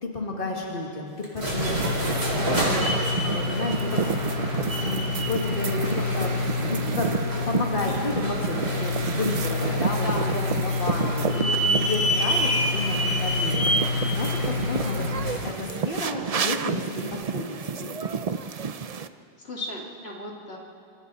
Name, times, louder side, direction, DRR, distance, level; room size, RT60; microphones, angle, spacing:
voice 1, 0.0-4.1 4.8-6.3 6.7-17.0 17.3-18.0, left 2 dB, 60° left, -1 dB, 2.4 m, -32 dB
sound 1, 1.2-15.5, left 2 dB, 90° right, 4.7 m, -26 dB
sound 2, 1.6-19.1, right 6 dB, 45° right, 0.6 m, -31 dB
voice 2, 9.9-11.1 19.4-20.6, left 1 dB, 80° left, -2 dB, 2.6 m, -35 dB
27.5 x 25.0 x 4.1 m, 2.6 s
omnidirectional pair, 1.0 m